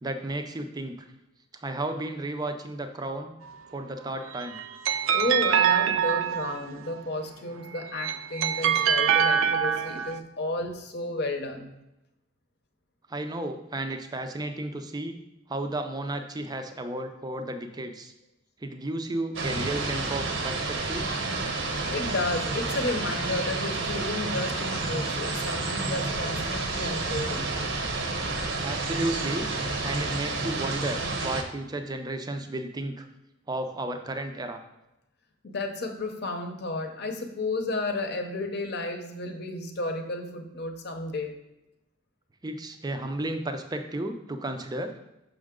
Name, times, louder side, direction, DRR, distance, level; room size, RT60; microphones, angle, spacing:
voice 1, 0.0-1.0 1.5-3.3 3.7-4.6 13.1-15.2 15.5-18.1 18.6-21.1 28.6-29.5 29.8-33.0 33.5-34.6 42.4-44.9, right 1 dB, 20° right, 6 dB, 0.5 m, -33 dB
sound 1, 4.4-6.8 7.7-10.2, right 8 dB, 80° right, 0.4 m, -24 dB
voice 2, 5.1-11.7 21.9-27.5 35.4-41.3, left 2 dB, 55° left, 4 dB, 0.8 m, -32 dB
sound 2, 19.3-31.4, right 3 dB, 65° right, 0.9 m, -30 dB
6.3 x 5.6 x 3.7 m, 0.92 s
head